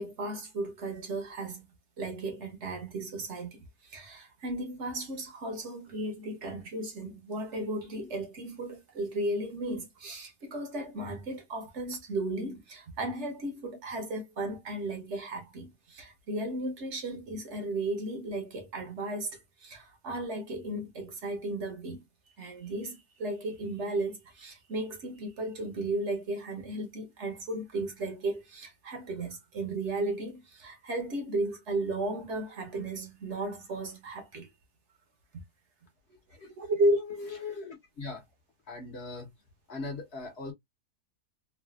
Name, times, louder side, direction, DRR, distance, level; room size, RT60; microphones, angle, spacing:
voice 1, 0.0-1.7 2.0-19.3 19.6-22.0 22.4-34.5 36.6-37.0, right 1 dB, 55° right, 1.0 m, -34 dB
voice 2, 37.1-38.2 38.7-39.3 39.7-40.5, left 3 dB, 50° left, 1.1 m, -39 dB
3.2 x 2.3 x 2.3 m
omnidirectional pair, 1.7 m